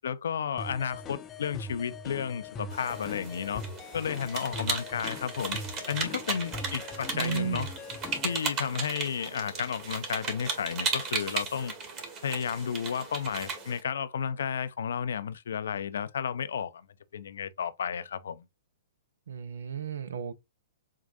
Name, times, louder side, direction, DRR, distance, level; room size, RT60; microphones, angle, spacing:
voice 1, 0.0-3.6 3.9-5.6 5.9-7.7 8.2-11.7 12.2-16.9 17.1-18.4, left 7 dB, 70° left, 0.5 m, -32 dB
sound 1, 0.6-8.4, left 3 dB, 25° left, 0.6 m, -41 dB
sound 2, 2.7-13.8, right 4 dB, 30° right, 1.9 m, -36 dB
voice 2, 7.1-7.7 19.3-20.3, right 8 dB, 70° right, 0.7 m, -34 dB
7.3 x 2.5 x 2.5 m
hypercardioid pair, 120°, 0 cm